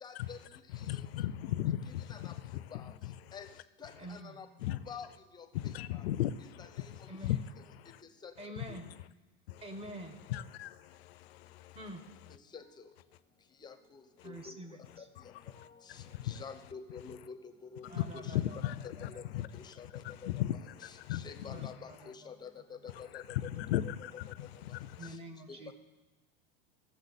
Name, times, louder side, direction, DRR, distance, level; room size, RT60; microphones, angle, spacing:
voice 1, 0.0-0.4 0.9-1.0 2.1-2.4 2.7-2.9 3.3-3.5 3.8-5.1 5.3-5.5 5.9-6.0 6.6-6.9 8.2-8.3 12.5-12.9 13.6-14.6 15.0-15.1 15.5-18.3 18.8-19.2 19.5-20.4 20.8-22.5 22.8-23.5 23.8-24.1 25.0-25.2 25.5-25.7, left 6 dB, 15° left, 9 dB, 0.7 m, -48 dB
voice 2, 0.8-3.3 4.6-4.8 5.5-7.4 7.8-8.0 8.6-8.7 9.5-9.6 10.3-11.8 15.5-16.4 17.9-18.0 18.3-19.5 19.9-21.7 23.1-25.0, left 13 dB, 85° left, 16 dB, 0.5 m, -37 dB
voice 3, 4.0-4.4 7.1-7.4 8.4-8.9 9.6-10.2 11.7-12.0 14.2-15.1 17.9-19.2 21.5-22.1 22.8-22.9 25.0-25.7, right 1 dB, 20° right, 6 dB, 1.2 m, -47 dB
16.0 x 6.9 x 4.1 m, 1.2 s
supercardioid pair, 135°, 30 cm